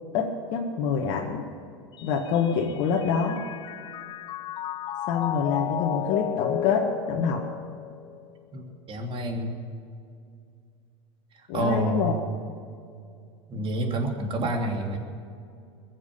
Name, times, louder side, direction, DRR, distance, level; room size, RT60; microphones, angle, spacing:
voice 1, 0.1-1.5 2.0-3.4 5.1-7.5 11.5-12.1, left 6 dB, 55° left, -1 dB, 1.8 m, -26 dB
Mallet percussion, 2.0-8.4, left 11 dB, 30° left, 0.4 m, -33 dB
voice 2, 8.5-9.5 11.4-12.1 13.5-15.0, right 1 dB, 35° right, 2 dB, 3.1 m, -28 dB
21.5 x 7.5 x 8.6 m, 2.3 s
hypercardioid pair, 95°, 15 cm